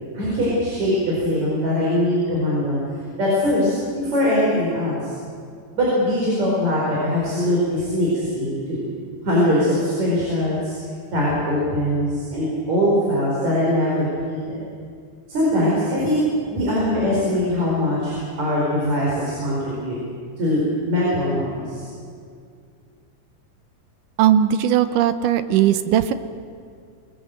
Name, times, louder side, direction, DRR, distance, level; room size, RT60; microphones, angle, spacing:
voice 1, 0.0-2.8 3.2-5.1 5.8-8.9 9.2-10.7 11.1-14.6 15.3-16.2 16.5-20.0 20.4-21.9, left 1 dB, 55° right, -5 dB, 5.9 m, -22 dB
voice 2, 24.2-26.1, right 10 dB, 75° right, 11 dB, 2.4 m, -18 dB
25.5 x 19.5 x 7.8 m, 2.2 s
omnidirectional pair, 3.8 m